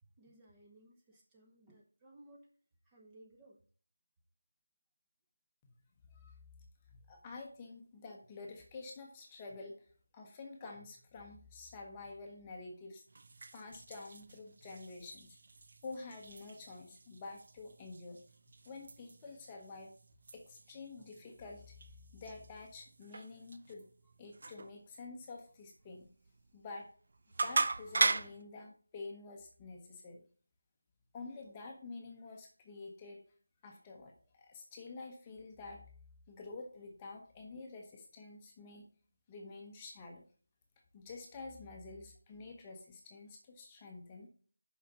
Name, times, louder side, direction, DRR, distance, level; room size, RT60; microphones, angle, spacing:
voice 1, 0.2-2.5 2.8-3.6, right 1 dB, 10° right, -2 dB, 1.0 m, -60 dB
voice 2, 6.9-9.7 10.1-13.0 13.5-15.4 15.8-18.2 18.6-19.9 20.3-21.8 22.1-23.9 24.2-26.1 26.5-26.9 27.4-30.2 31.1-33.2 33.6-35.8 36.3-38.9 39.3-40.2 40.9-44.3, left 3 dB, 15° left, 0 dB, 1.0 m, -49 dB
sound 1, 13.1-28.4, right 3 dB, 45° right, 0.6 m, -41 dB
6.3 x 5.7 x 5.4 m, 0.44 s
figure-of-eight pair, 170°, 0 cm